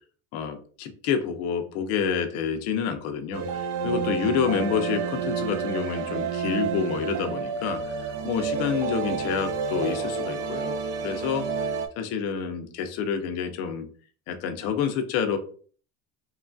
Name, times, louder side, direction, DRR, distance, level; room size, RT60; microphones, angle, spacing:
voice 1, 0.3-11.7 12.0-13.9 14.3-15.4, left 7 dB, 50° left, 7 dB, 0.5 m, -28 dB
sound 1, 3.3-11.9, right 6 dB, 55° right, 0.4 m, -30 dB
3.0 x 2.3 x 2.4 m, 0.43 s
cardioid pair, 170°, 33 cm